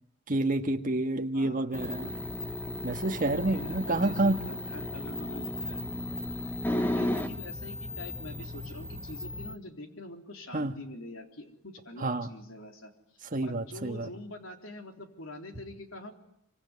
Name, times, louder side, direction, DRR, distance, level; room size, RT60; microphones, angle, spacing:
voice 1, 0.3-2.2 2.8-4.4 10.5-10.7 12.0-12.3 13.3-14.1, right 2 dB, 40° right, 6 dB, 1.6 m, -28 dB
sound 1, 1.7-9.6, left 1 dB, 10° left, 1.3 m, -35 dB
voice 2, 3.5-5.8 6.7-12.9 13.4-16.1, left 1 dB, 80° left, 4 dB, 3.7 m, -45 dB
25.0 x 24.5 x 9.7 m, 0.76 s
head